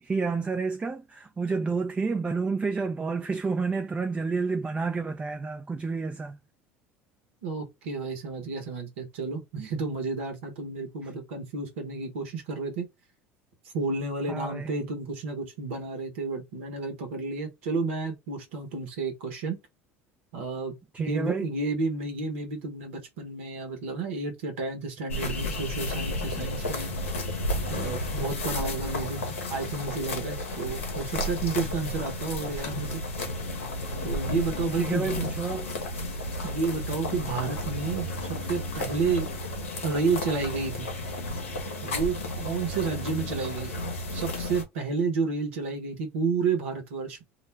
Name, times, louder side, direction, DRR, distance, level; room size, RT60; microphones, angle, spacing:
voice 1, 0.0-6.4 14.3-14.8 20.9-21.5 34.7-35.7, right 4 dB, 20° right, 0.4 m, -30 dB
voice 2, 7.4-12.9 13.7-19.6 20.3-26.9 27.7-33.0 34.0-35.1 36.4-39.3 39.8-40.9 41.8-47.2, right 4 dB, 80° right, 0.9 m, -31 dB
sound 1, 25.1-44.6, left 1 dB, 85° left, 0.8 m, -32 dB
2.3 x 2.1 x 3.1 m
hypercardioid pair, 75°, 7 cm